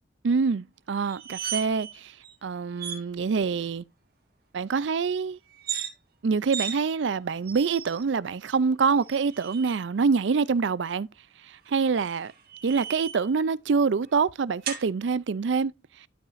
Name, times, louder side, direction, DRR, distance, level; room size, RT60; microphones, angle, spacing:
voice 1, 0.2-2.1 2.4-3.8 4.5-5.4 6.2-11.1 11.7-12.3 12.6-15.7, right 5 dB, 75° right, 0.4 m, -25 dB
sound 1, 1.0-1.9 2.2-2.3 2.8-3.0 5.5-5.9 6.5-6.8 7.5-8.0 9.0-9.8 11.7-13.3 14.6-14.9, right 8 dB, 55° right, 1.9 m, -35 dB
12.0 x 5.6 x 2.6 m
head